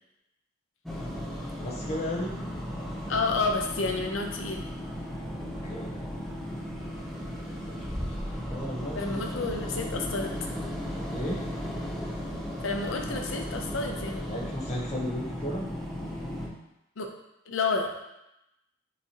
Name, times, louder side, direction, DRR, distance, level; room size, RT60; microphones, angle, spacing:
sound 1, 0.9-16.5, equal, ahead, 0.6 m, -35 dB
voice 1, 1.6-2.3 5.6-5.9 7.6-7.9 8.5-9.4 11.1-11.4 14.3-15.7, left 1 dB, 35° left, -2 dB, 0.9 m, -34 dB
voice 2, 3.1-4.6 8.9-10.3 12.6-14.5 17.0-17.1 17.5-17.9, left 3 dB, 85° left, 3 dB, 0.6 m, -30 dB
5.8 x 2.9 x 2.8 m, 0.88 s
head